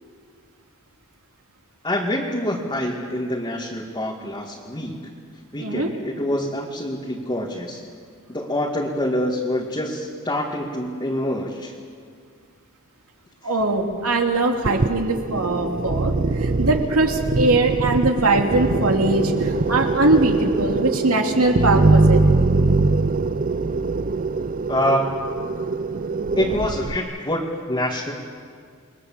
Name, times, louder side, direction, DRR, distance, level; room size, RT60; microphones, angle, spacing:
voice 1, 1.8-5.1 5.5-7.8 8.3-11.7 13.4-13.5 24.7-25.2 26.4-28.1, left 1 dB, 20° left, -3 dB, 2.3 m, -26 dB
voice 2, 5.6-5.9 13.4-22.2, right 2 dB, 70° right, 3 dB, 2.8 m, -21 dB
sound 1, 14.6-27.0, right 3 dB, 40° right, 0.6 m, -22 dB
29.0 x 21.5 x 7.6 m, 2.1 s
head